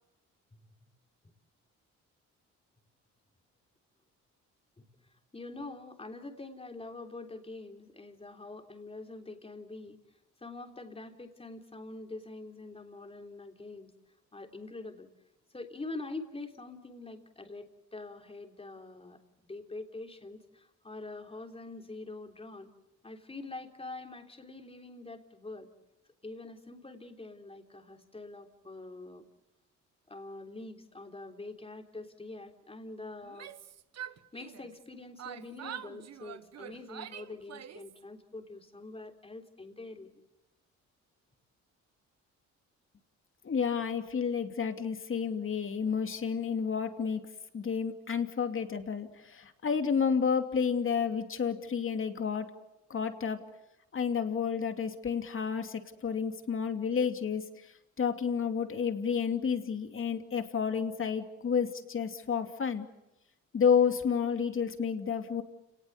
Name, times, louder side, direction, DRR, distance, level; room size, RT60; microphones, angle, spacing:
voice 1, 0.5-0.9 4.8-10.0 10.4-13.9 14.3-15.1 15.5-22.7 23.0-25.7 26.2-29.3 30.1-33.5 34.0-40.2, left 2 dB, 20° left, 4 dB, 3.4 m, -45 dB
Yell, 33.2-34.9 35.2-38.0, right 10 dB, 60° right, 1.2 m, -45 dB
voice 2, 43.4-47.2 47.5-52.5 52.9-53.4 53.9-57.5 58.0-62.9 63.5-65.4, left 6 dB, 45° left, 7 dB, 2.7 m, -30 dB
30.0 x 19.0 x 8.1 m, 0.94 s
cardioid pair, 90°, 30 cm